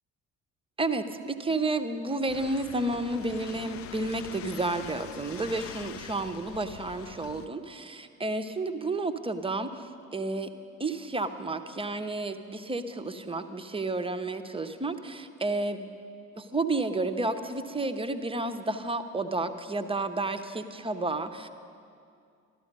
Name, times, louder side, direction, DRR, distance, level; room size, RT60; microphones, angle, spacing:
voice 1, 0.8-10.5 10.8-15.9 16.4-21.5, right 2 dB, 15° right, 8 dB, 0.7 m, -31 dB
sound 1, 2.3-7.5, left 9 dB, 35° left, 0.5 m, -44 dB
13.5 x 12.0 x 5.3 m, 2.4 s
figure-of-eight pair, 45°, 42 cm